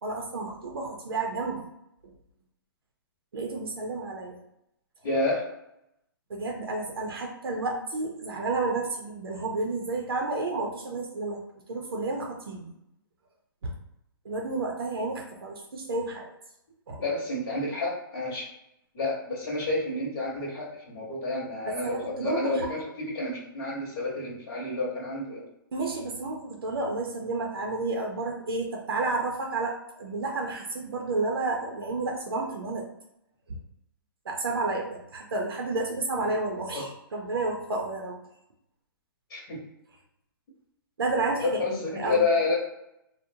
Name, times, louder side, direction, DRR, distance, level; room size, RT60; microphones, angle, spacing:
voice 1, 0.0-1.6 3.3-4.4 6.3-11.4 11.7-12.7 13.6-13.7 14.2-16.3 16.9-17.0 21.7-22.7 25.7-32.9 34.3-38.2 41.0-41.6 42.0-42.2, right 3 dB, 85° right, 1 dB, 0.6 m, -31 dB
voice 2, 5.0-5.5 17.0-18.5 18.9-25.4 36.1-36.3 36.7-36.8 39.3-39.6 41.4-42.6, left 2 dB, 50° left, -6 dB, 0.9 m, -29 dB
2.8 x 2.1 x 2.6 m, 0.82 s
hypercardioid pair, 150°, 12 cm